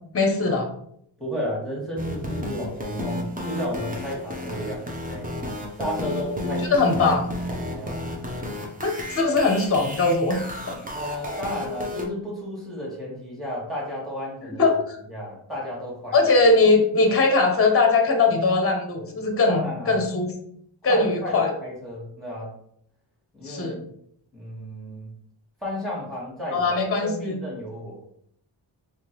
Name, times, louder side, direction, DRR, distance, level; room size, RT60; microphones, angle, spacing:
voice 1, 0.1-0.7 6.7-7.3 8.8-10.8 14.4-15.0 16.1-20.3 20.8-21.5 23.4-23.8 26.5-27.4, left 3 dB, 30° left, 4 dB, 0.8 m, -21 dB
voice 2, 1.2-5.4 5.8-6.7 7.7-8.0 10.9-14.6 15.1-16.3 19.5-20.0 20.9-22.5 23.3-23.8 24.3-25.1 25.6-26.7 27.0-28.0, equal, ahead, -5 dB, 1.5 m, -33 dB
sound 1, 2.0-12.1, left 1 dB, 15° right, 0.7 m, -32 dB
3.6 x 3.1 x 3.0 m, 0.68 s
wide cardioid pair, 95°, 48 cm